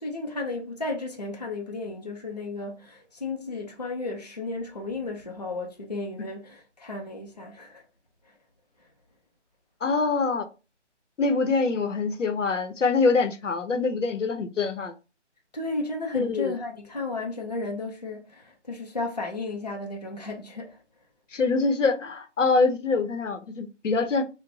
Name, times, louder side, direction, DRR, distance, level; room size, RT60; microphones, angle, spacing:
voice 1, 0.0-7.8 15.5-20.8, left 3 dB, 35° left, 0.4 m, -33 dB
voice 2, 9.8-10.5 11.2-14.9 16.1-16.5 21.3-24.2, left 4 dB, 85° left, 0.8 m, -24 dB
4.1 x 2.1 x 2.6 m
figure-of-eight pair, 175°, 36 cm